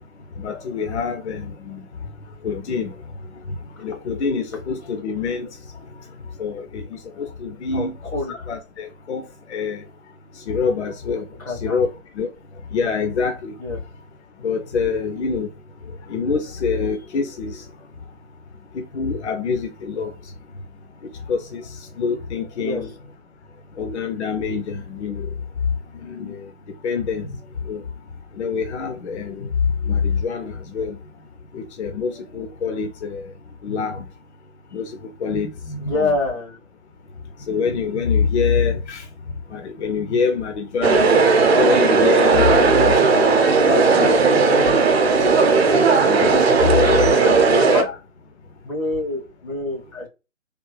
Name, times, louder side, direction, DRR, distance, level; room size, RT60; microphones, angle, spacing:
voice 1, 0.4-1.8 2.4-2.9 3.8-5.5 6.4-6.8 7.2-7.9 8.3-9.2 9.5-9.8 10.5-11.2 11.6-11.9 12.2-12.3 12.7-13.5 14.4-15.5 16.1-17.6 18.7-20.1 21.3-21.6 22.0-22.9 23.8-25.3 26.1-26.4 26.8-27.3 27.7-27.8 28.4-29.5 29.9-31.0 31.5-33.2 33.6-34.0 34.7-34.9 35.2-36.1 37.5-39.0 39.5-41.1 41.5-43.3 43.7-44.2 44.5-45.1 46.1-47.1 47.5-48.0, left 5 dB, 60° left, 0.6 m, -25 dB
voice 2, 11.5-11.8 13.6-13.8 22.6-22.8 35.9-36.6 43.6-43.9 44.3-44.5 46.6-46.8 47.0-47.9 48.6-50.1, left 2 dB, 90° left, 1.6 m, -26 dB
sound 1, 40.8-47.8, right 4 dB, 50° right, 0.7 m, -16 dB
3.3 x 2.0 x 3.2 m
hypercardioid pair, 155°, 40 cm